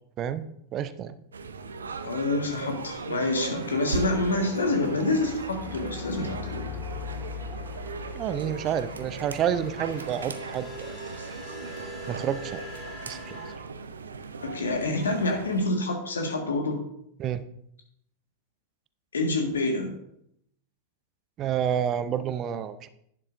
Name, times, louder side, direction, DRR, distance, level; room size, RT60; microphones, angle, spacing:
voice 1, 0.7-1.2 8.1-11.0 12.1-12.6 13.1-13.4 17.2-17.4 21.4-22.9, right 9 dB, 30° right, 14 dB, 0.5 m, -29 dB
sound 1, 1.3-15.7, right 4 dB, 70° right, 0.7 m, -38 dB
voice 2, 2.0-6.7 14.4-16.8 19.1-19.9, left 2 dB, 70° left, 3 dB, 1.7 m, -27 dB
sound 2, 3.1-13.5, left 4 dB, 10° left, 2.4 m, -41 dB
11.0 x 9.8 x 2.6 m, 0.73 s
figure-of-eight pair, 90°, 0 cm